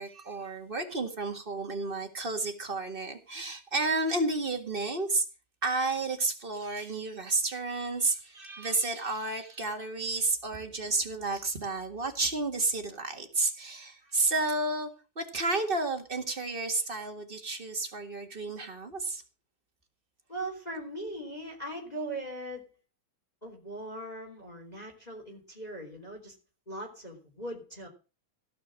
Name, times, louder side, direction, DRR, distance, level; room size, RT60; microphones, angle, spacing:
voice 1, 0.0-5.3 5.6-14.9 15.1-19.2, right 3 dB, 25° right, 4 dB, 1.3 m, -31 dB
voice 2, 20.3-22.8 23.4-26.3 26.7-27.9, right 1 dB, 15° left, 1 dB, 3.0 m, -40 dB
17.0 x 5.9 x 7.5 m, 0.33 s
omnidirectional pair, 3.5 m